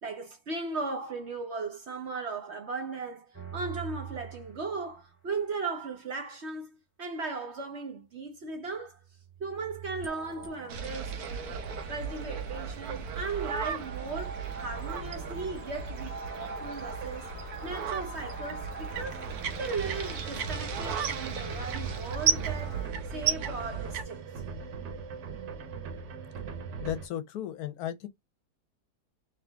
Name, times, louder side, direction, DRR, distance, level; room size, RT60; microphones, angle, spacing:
voice 1, 0.0-9.0 9.4-11.6 11.9-19.3 19.6-24.2, right 4 dB, 50° right, 0.9 m, -37 dB
sound 1, 3.3-5.1 9.0-22.9, right 4 dB, 15° right, 0.4 m, -43 dB
sound 2, 10.7-24.0, right 7 dB, 70° right, 1.2 m, -35 dB
sound 3, 18.9-27.1, right 5 dB, 85° right, 1.5 m, -41 dB
voice 2, 26.8-28.1, left 11 dB, 70° left, 1.0 m, -35 dB
3.7 x 3.0 x 3.3 m
omnidirectional pair, 1.8 m